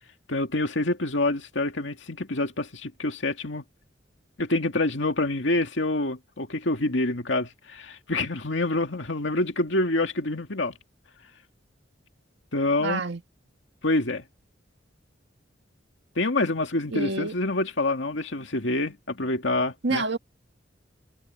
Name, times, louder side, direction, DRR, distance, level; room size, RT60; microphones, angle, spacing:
voice 1, 0.3-3.6 4.4-10.7 12.5-13.0 13.8-14.2 16.2-20.0, left 2 dB, 70° left, 2.2 m, -26 dB
voice 2, 12.8-13.2 16.9-17.3 19.8-20.2, right 3 dB, 65° right, 1.8 m, -28 dB
head